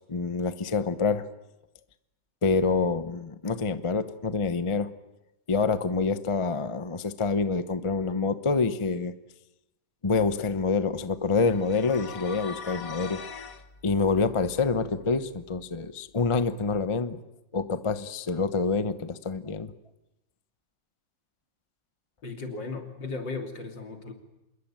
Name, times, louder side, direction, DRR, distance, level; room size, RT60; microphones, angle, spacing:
voice 1, 0.1-1.3 2.4-4.9 5.5-9.1 10.0-13.2 13.8-17.2 17.5-19.7, left 4 dB, 25° left, 12 dB, 0.7 m, -27 dB
sound 1, 11.5-13.6, left 6 dB, 50° left, 1.9 m, -40 dB
voice 2, 22.2-24.1, left 3 dB, 80° left, 5 dB, 3.7 m, -36 dB
26.0 x 21.5 x 9.0 m, 0.92 s
omnidirectional pair, 2.0 m